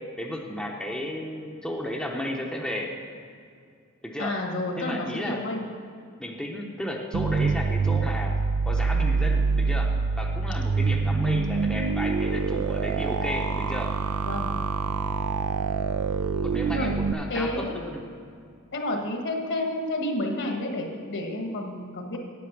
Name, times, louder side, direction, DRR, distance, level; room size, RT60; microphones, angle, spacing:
voice 1, 0.2-2.9 4.0-4.3 4.8-5.4 6.2-8.3 8.6-13.9 16.4-18.0, left 1 dB, 5° left, -1 dB, 0.7 m, -33 dB
voice 2, 4.2-5.7 14.2-14.5 16.7-17.0 17.3-17.9 18.7-22.2, left 1 dB, 55° left, 3 dB, 1.3 m, -30 dB
sound 1, 7.1-17.1, right 4 dB, 85° right, 0.4 m, -25 dB
8.6 x 8.4 x 5.9 m, 2.3 s
head